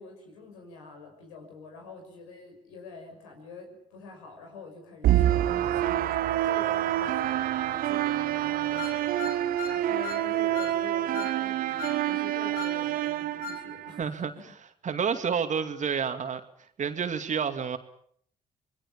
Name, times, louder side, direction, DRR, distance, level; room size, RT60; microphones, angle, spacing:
voice 1, 0.0-6.1 6.4-14.0, left 4 dB, 85° left, 2 dB, 6.0 m, -46 dB
sound 1, 5.0-14.0, right 13 dB, 65° right, 1.0 m, -27 dB
sound 2, 8.8-10.3 10.5-10.8 11.1-11.4 11.8-12.0 12.5-12.8 13.4-13.6, left 7 dB, 65° left, 2.4 m, -38 dB
voice 2, 14.0-14.3 14.8-16.4 16.8-17.8, right 6 dB, 50° right, 8 dB, 2.5 m, -29 dB
28.0 x 21.0 x 7.1 m, 0.64 s
hypercardioid pair, 45°, 16 cm